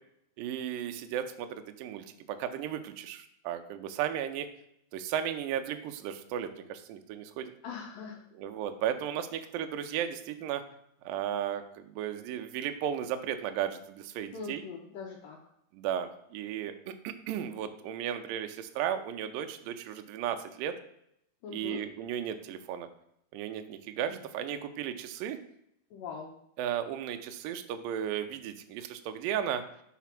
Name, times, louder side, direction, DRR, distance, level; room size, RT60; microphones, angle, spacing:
voice 1, 0.4-4.5 4.9-7.5 8.4-10.6 11.0-14.6 15.7-20.7 21.5-22.9 23.3-25.4 26.6-29.6, right 9 dB, 90° right, 8 dB, 1.9 m, -35 dB
voice 2, 7.6-8.2 14.3-15.4 21.4-21.8 25.9-26.3, left 6 dB, 75° left, -1 dB, 2.1 m, -41 dB
5.9 x 4.1 x 5.8 m, 0.75 s
omnidirectional pair, 4.7 m